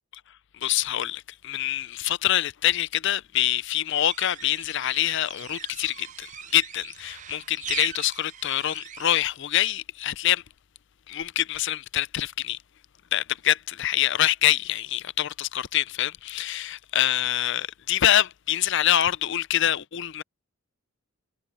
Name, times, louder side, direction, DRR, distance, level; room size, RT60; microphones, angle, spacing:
voice 1, 0.6-10.4 11.1-12.6 13.1-20.2, left 12 dB, 55° left, 0.5 m, -25 dB
sound 1, 3.9-9.2, right 9 dB, 35° right, 0.6 m, -40 dB
head